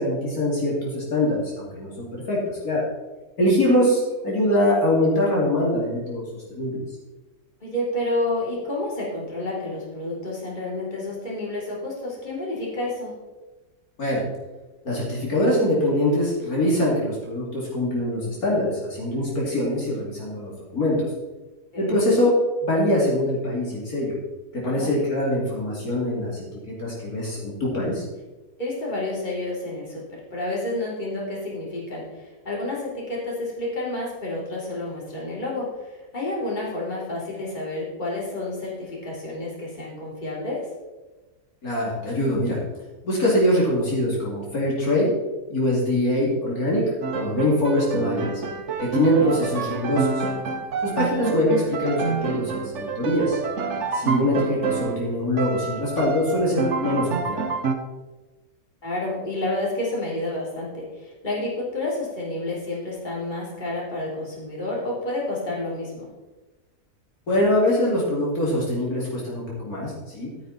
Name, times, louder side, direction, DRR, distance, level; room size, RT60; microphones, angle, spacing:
voice 1, 0.0-2.4 2.6-2.8 3.4-6.2 6.5-6.8 14.0-14.2 14.8-21.1 21.8-22.3 22.6-24.2 24.5-28.0 41.6-42.6 43.0-45.1 45.5-46.8 47.1-48.3 48.9-50.1 50.8-53.4 53.9-57.4 67.3-70.3, left 1 dB, 60° left, -5 dB, 3.3 m, -23 dB
voice 2, 7.6-13.1 21.7-22.1 24.6-24.9 28.6-30.0 30.3-40.7 49.2-49.4 58.8-66.1, left 2 dB, 25° left, -5 dB, 3.6 m, -30 dB
Piano, 47.0-55.1 55.4-57.7, right 5 dB, 50° right, 1.2 m, -28 dB
12.0 x 9.5 x 4.2 m, 1.2 s
omnidirectional pair, 1.7 m